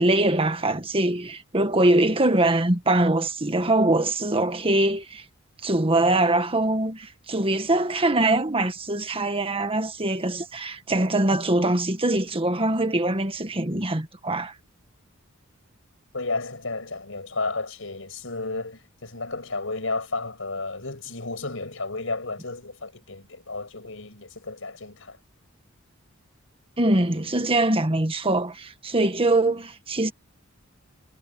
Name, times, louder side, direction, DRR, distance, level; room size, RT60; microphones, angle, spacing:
voice 1, 0.0-5.2 5.6-14.5 26.8-30.1, right 2 dB, 25° right, 1.7 m, -23 dB
voice 2, 16.1-25.2, left 3 dB, 70° left, 7.7 m, -32 dB
head